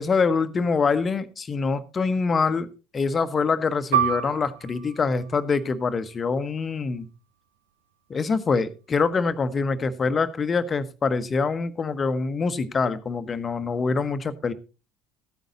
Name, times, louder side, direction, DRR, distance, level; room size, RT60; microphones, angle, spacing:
voice 1, 0.0-2.7 2.9-7.1 8.1-14.5, left 4 dB, 30° left, 1.2 m, -25 dB
Piano, 3.9-9.0 9.3-9.5 10.2-10.6, right 9 dB, 75° right, 0.8 m, -31 dB
14.5 x 9.2 x 4.0 m
figure-of-eight pair, 60°, 0 cm